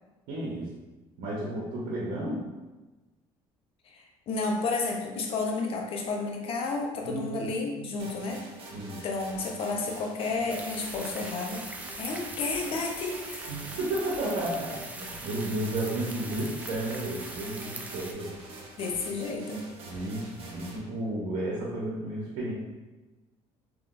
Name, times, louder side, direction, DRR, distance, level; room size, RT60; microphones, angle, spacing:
voice 1, 0.3-0.7 1.2-2.5 7.0-8.0 8.7-9.0 13.5-18.6 19.8-22.5, right 1 dB, 80° right, -5 dB, 0.9 m, -33 dB
voice 2, 3.9-8.5 9.0-11.6 12.0-13.4 18.8-19.6, left 3 dB, 50° left, 1 dB, 0.7 m, -31 dB
sound 1, 8.0-20.8, right 2 dB, 55° right, 0.8 m, -46 dB
sound 2, 10.5-18.1, right 2 dB, 10° right, 0.4 m, -41 dB
3.7 x 3.0 x 2.5 m, 1.2 s
cardioid pair, 105°, 12 cm